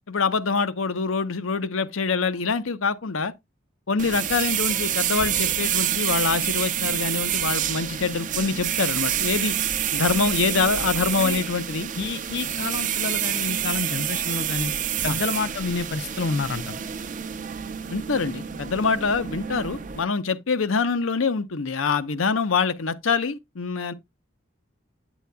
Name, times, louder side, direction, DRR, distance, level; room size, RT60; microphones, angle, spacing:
voice 1, 0.1-3.3 3.9-9.5 9.9-11.9 15.0-15.2 17.9-23.9, left 4 dB, 85° left, 0.7 m, -25 dB
sound 1, 4.0-20.0, right 10 dB, 40° right, 0.6 m, -27 dB
voice 2, 12.0-14.7 15.0-16.8, left 4 dB, 55° left, 0.5 m, -29 dB
9.2 x 8.1 x 2.2 m
head